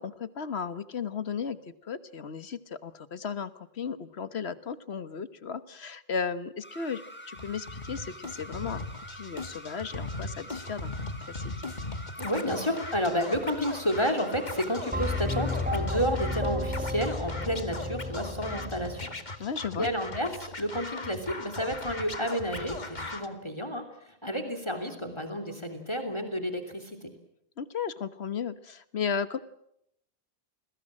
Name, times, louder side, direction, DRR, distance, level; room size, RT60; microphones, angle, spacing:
voice 1, 0.0-8.8 9.1-10.9 11.3-11.5 19.4-19.9 27.6-29.4, left 6 dB, 80° left, 13 dB, 1.5 m, -35 dB
sound 1, 6.6-15.8, equal, 10° left, 6.2 m, -46 dB
Scratching (performance technique), 7.4-23.3, left 2 dB, 45° left, 2.1 m, -39 dB
voice 2, 12.2-19.1 19.8-27.1, equal, 25° left, 8 dB, 3.1 m, -31 dB
sound 2, 14.9-19.1, left 1 dB, 10° right, 1.6 m, -32 dB
29.5 x 21.5 x 7.6 m, 0.76 s
omnidirectional pair, 1.1 m